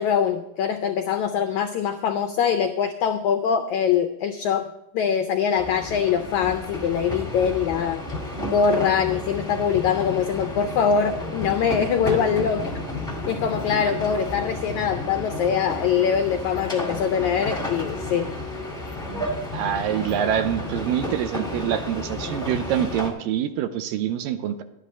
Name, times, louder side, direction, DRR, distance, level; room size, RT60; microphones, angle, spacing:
voice 1, 0.0-8.0 8.5-12.7 13.3-18.3, left 7 dB, 85° left, 6 dB, 1.6 m, -23 dB
sound 1, 5.6-23.1, left 1 dB, 5° left, 0.5 m, -32 dB
voice 2, 19.5-24.6, right 10 dB, 80° right, 9 dB, 2.3 m, -25 dB
11.5 x 10.5 x 4.3 m, 0.88 s
omnidirectional pair, 4.1 m